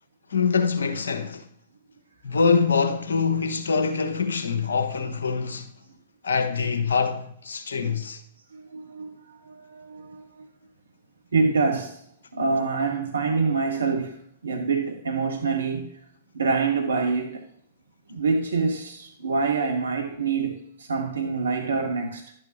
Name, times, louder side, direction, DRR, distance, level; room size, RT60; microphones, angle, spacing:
voice 1, 0.3-1.4 2.2-5.7 6.2-8.2, left 5 dB, 75° left, 1.2 m, -24 dB
voice 2, 8.5-10.5 11.3-12.0 12.3-15.9 16.3-17.4 18.1-22.3, right 4 dB, 75° right, 1.0 m, -26 dB
11.5 x 8.8 x 3.2 m
figure-of-eight pair, 110°, 0 cm